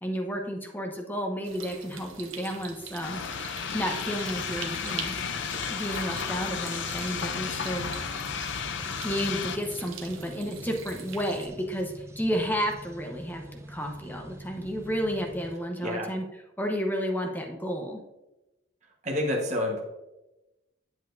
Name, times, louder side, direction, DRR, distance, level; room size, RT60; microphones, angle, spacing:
voice 1, 0.0-3.2 3.7-5.2 5.7-7.9 9.0-16.2 16.6-18.0, equal, 10° left, 2 dB, 0.9 m, -32 dB
sound 1, 1.4-11.5, right 6 dB, 85° right, 0.9 m, -43 dB
sound 2, 3.0-9.6, left 6 dB, 65° left, 0.5 m, -33 dB
sound 3, 7.3-15.6, right 1 dB, 15° right, 0.4 m, -45 dB
voice 2, 19.0-19.8, left 1 dB, 35° right, -1 dB, 1.2 m, -28 dB
8.1 x 7.4 x 2.6 m, 0.98 s
head